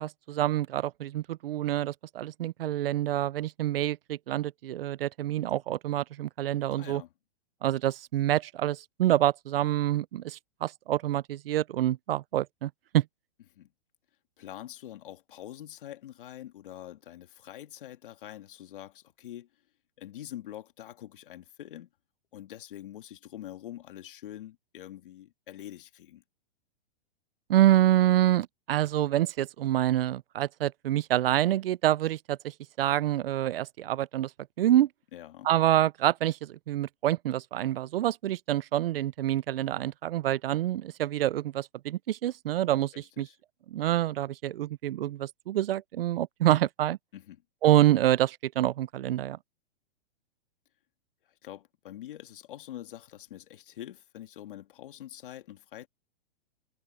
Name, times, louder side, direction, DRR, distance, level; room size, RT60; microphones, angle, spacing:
voice 1, 0.0-7.0 7.6-13.0 27.5-34.3 34.6-34.9 35.4-43.3 43.7-47.0 47.6-49.4, right 13 dB, 65° right, 0.6 m, -27 dB
voice 2, 6.8-7.1 13.5-13.7 14.4-19.5 20.0-21.9 22.3-26.2 35.1-35.5 42.9-43.4 47.1-47.4 51.3-55.9, left 12 dB, 60° left, 2.3 m, -45 dB
hypercardioid pair, 175°, 30 cm